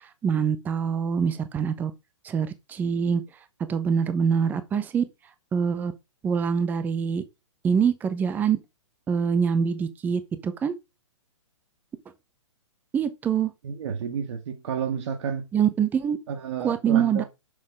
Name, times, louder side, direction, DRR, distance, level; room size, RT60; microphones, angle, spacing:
voice 1, 0.0-1.9 2.2-3.2 3.7-5.0 5.5-5.9 6.2-7.2 7.6-8.6 9.1-10.7 12.9-13.5 15.5-16.2 16.6-17.2, right 7 dB, 10° right, 0.6 m, -24 dB
voice 2, 13.6-15.4 16.3-17.2, right 7 dB, 60° right, 1.4 m, -30 dB
6.6 x 4.6 x 3.9 m
hypercardioid pair, 145°, 16 cm